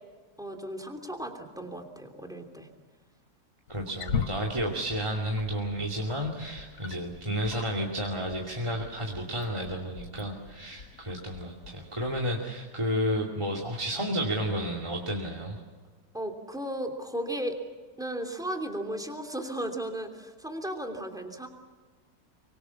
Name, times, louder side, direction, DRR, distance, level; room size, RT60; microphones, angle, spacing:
voice 1, 0.4-2.7 16.1-17.6 18.0-21.5, right 1 dB, ahead, 4 dB, 2.9 m, -35 dB
Wild animals, 3.7-12.2, left 5 dB, 60° left, 1.5 m, -41 dB
voice 2, 3.7-15.6, equal, 20° right, 1 dB, 2.6 m, -31 dB
24.5 x 24.5 x 7.1 m, 1.5 s
omnidirectional pair, 1.7 m